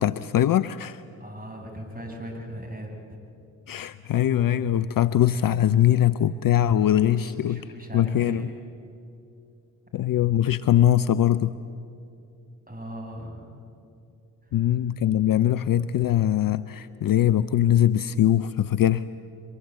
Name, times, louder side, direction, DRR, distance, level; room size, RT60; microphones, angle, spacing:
voice 1, 0.0-1.0 3.7-7.6 7.9-8.5 9.9-11.5 14.5-19.1, left 11 dB, 45° left, 15 dB, 0.7 m, -22 dB
voice 2, 1.2-2.9 7.0-8.6 12.7-13.5 14.5-14.6, equal, 20° right, 2 dB, 6.8 m, -39 dB
23.5 x 23.0 x 8.2 m, 2.6 s
hypercardioid pair, 45°, 48 cm